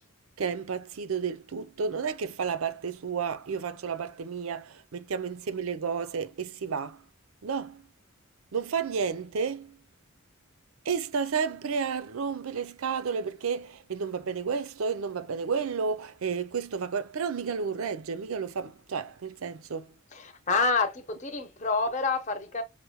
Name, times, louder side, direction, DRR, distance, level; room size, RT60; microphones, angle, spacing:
voice 1, 0.4-7.0 7.4-7.8 8.5-9.8 10.8-19.9, right 6 dB, 85° right, 0.5 m, -31 dB
voice 2, 20.1-22.6, left 4 dB, 35° left, 0.7 m, -28 dB
5.7 x 2.1 x 3.1 m
head